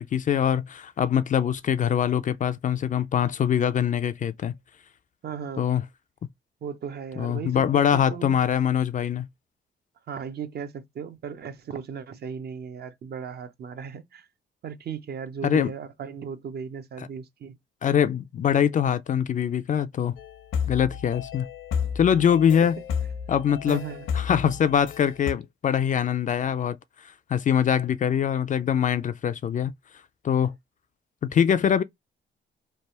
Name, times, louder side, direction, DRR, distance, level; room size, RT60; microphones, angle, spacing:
voice 1, 0.0-4.5 5.6-5.8 7.2-9.3 15.4-15.7 17.8-20.1 20.7-21.5 22.0-22.8 23.3-23.8 24.1-26.8 27.0-29.7 30.2-30.5 31.2-31.8, left 8 dB, 40° left, 0.4 m, -23 dB
voice 2, 5.2-5.7 6.6-8.4 10.1-14.3 14.6-17.6 22.6-22.7 23.7-24.1, right 7 dB, 55° right, 0.7 m, -36 dB
sound 1, 20.2-25.3, left 7 dB, 75° left, 0.8 m, -32 dB
3.3 x 2.4 x 4.3 m
cardioid pair, 90°, 20 cm